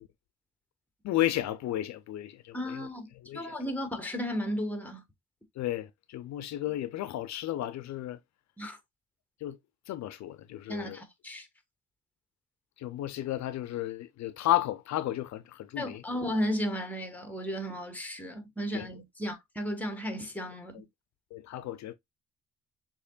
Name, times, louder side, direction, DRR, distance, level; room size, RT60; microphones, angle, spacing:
voice 1, 1.0-2.9 3.2-3.5 5.6-8.2 9.4-9.6 9.9-11.0 12.8-16.0 18.7-18.9 21.3-21.9, left 14 dB, 65° left, 0.5 m, -33 dB
voice 2, 2.5-3.1 3.3-5.0 8.6-8.8 10.7-11.5 15.8-20.8, equal, 5° left, 1.3 m, -34 dB
6.6 x 2.9 x 2.3 m
cardioid pair, 90°, 30 cm